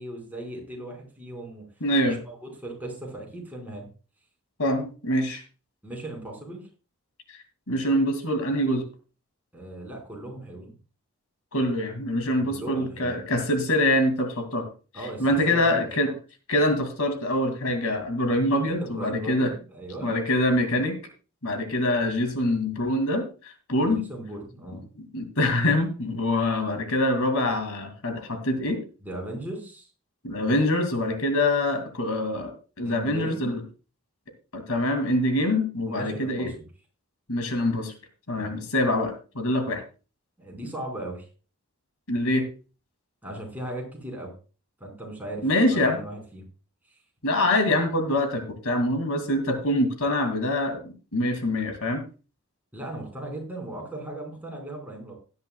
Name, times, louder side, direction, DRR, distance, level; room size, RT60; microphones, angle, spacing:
voice 1, 0.0-1.6 2.0-3.9 5.8-6.7 9.5-10.7 12.4-13.2 14.9-15.9 18.8-20.2 23.8-24.8 29.0-29.9 32.8-33.5 35.9-36.6 38.3-38.5 40.4-41.3 43.2-44.3 44.8-46.4 52.7-55.1, right 1 dB, 10° right, -1 dB, 4.7 m, -37 dB
voice 2, 1.8-2.2 4.6-5.4 7.7-8.9 11.5-14.7 15.2-16.1 16.5-19.5 20.0-21.0 21.4-23.2 23.7-24.0 25.1-28.8 30.2-32.5 32.8-33.6 34.5-36.5 37.3-37.9 38.3-39.8 42.1-42.4 45.4-46.0 47.2-52.0, left 1 dB, 70° left, 6 dB, 2.4 m, -24 dB
17.5 x 10.0 x 2.3 m, 0.34 s
head